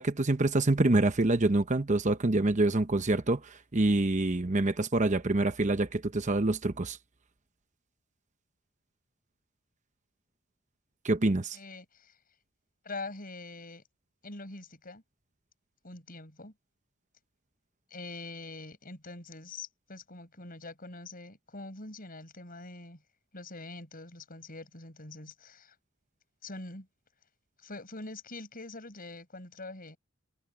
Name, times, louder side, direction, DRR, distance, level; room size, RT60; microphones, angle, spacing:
voice 1, 0.0-3.4 3.7-7.0 11.0-11.6, right 2 dB, 35° right, 0.9 m, -26 dB
voice 2, 11.5-12.1 12.8-13.8 14.2-15.0 15.8-16.5 17.9-23.0 23.3-25.7 26.4-26.9 27.6-30.0, left 2 dB, 45° left, 7.2 m, -44 dB
head